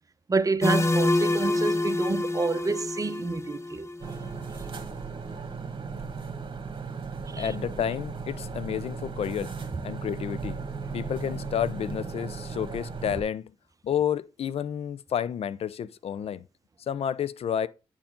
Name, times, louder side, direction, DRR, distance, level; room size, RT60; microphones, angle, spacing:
voice 1, 0.3-3.9 7.3-7.5, right 4 dB, 30° right, 0.8 m, -28 dB
sound 1, 0.6-4.3, left 2 dB, 25° left, 1.0 m, -27 dB
sound 2, 4.0-13.2, right 5 dB, 50° right, 1.6 m, -36 dB
voice 2, 7.4-9.5 9.8-10.6 10.9-13.5 13.8-16.4 16.9-17.7, left 9 dB, 65° left, 0.5 m, -30 dB
8.8 x 4.4 x 3.7 m
supercardioid pair, 60°, 11 cm